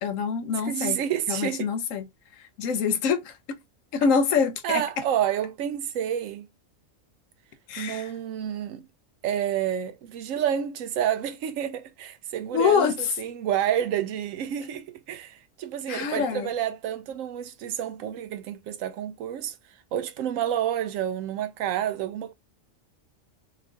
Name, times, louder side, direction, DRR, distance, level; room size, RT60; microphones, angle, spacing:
voice 1, 0.0-1.0 1.3-2.1 2.6-3.6 3.9-4.8 7.7-8.1 12.5-12.9 15.9-16.5, left 6 dB, 85° left, 1.1 m, -25 dB
voice 2, 0.7-1.7 4.6-6.5 7.8-8.9 9.2-19.6 19.9-22.3, right 10 dB, 85° right, 1.0 m, -29 dB
2.6 x 2.5 x 3.6 m
omnidirectional pair, 1.3 m